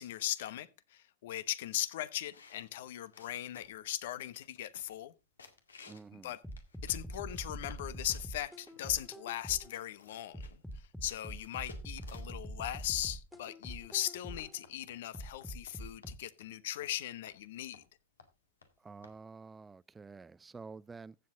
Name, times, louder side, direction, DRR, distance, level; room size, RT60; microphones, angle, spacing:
voice 1, 0.0-5.1 6.1-6.4 6.8-17.8, left 13 dB, 65° left, 1.0 m, -38 dB
sound 1, 2.3-3.9 4.4-4.5 4.7-5.1 5.4-6.1 6.5-7.8 8.1-8.7 9.3-9.4 9.6-12.4 13.0-15.8 16.0-16.1 16.4-16.5 16.8-16.9 17.3-17.4 17.7-17.9 18.2-18.3 18.6-18.7 19.0-19.2, left 5 dB, 85° left, 2.0 m, -57 dB
voice 2, 5.9-6.4 18.8-21.2, right 4 dB, 15° right, 0.5 m, -49 dB
sound 2, 6.4-9.8 10.3-14.6 15.1-16.1, equal, ahead, 1.9 m, -44 dB
15.0 x 7.6 x 3.8 m
hypercardioid pair, 100°, 0 cm